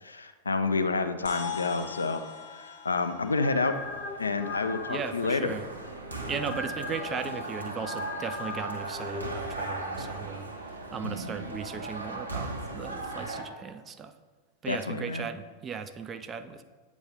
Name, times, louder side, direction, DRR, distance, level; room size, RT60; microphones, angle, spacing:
voice 1, 0.1-2.2 2.5-3.7 4.2-5.5 14.7-15.3, left 3 dB, 75° left, 9 dB, 0.4 m, -29 dB
sound 1, 1.3-5.9, left 6 dB, 55° left, 1.0 m, -42 dB
sound 2, 3.1-9.2, left 4 dB, 30° left, 0.7 m, -40 dB
sound 3, 3.7-13.4, right 2 dB, 85° right, 0.9 m, -38 dB
voice 2, 4.9-5.6 6.3-10.5 10.9-14.1 14.6-16.6, right 6 dB, 25° right, 9 dB, 0.4 m, -37 dB
8.7 x 3.1 x 5.2 m, 1.3 s
figure-of-eight pair, 90°, 0 cm